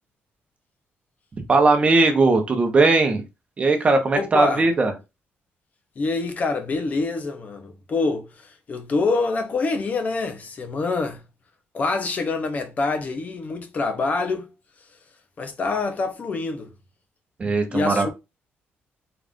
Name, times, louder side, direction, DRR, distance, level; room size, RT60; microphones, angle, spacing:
voice 1, 1.5-3.2 3.6-4.9 17.4-18.1, right 3 dB, 30° right, 0.7 m, -18 dB
voice 2, 4.1-4.6 6.0-11.2 11.7-14.5 15.4-16.7 17.7-18.1, left 3 dB, 35° left, 0.5 m, -26 dB
3.8 x 2.4 x 3.5 m
cardioid pair, 150°, 4 cm